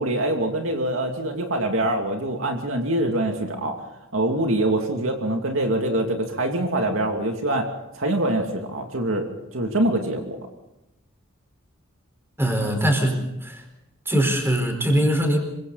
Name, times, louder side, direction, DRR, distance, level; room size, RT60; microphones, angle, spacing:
voice 1, 0.0-3.8 4.1-7.7 7.9-10.4, right 1 dB, 70° right, 3 dB, 2.6 m, -24 dB
voice 2, 12.4-13.6 14.1-15.4, equal, 10° right, 4 dB, 4.5 m, -22 dB
26.5 x 24.0 x 4.1 m, 0.91 s
head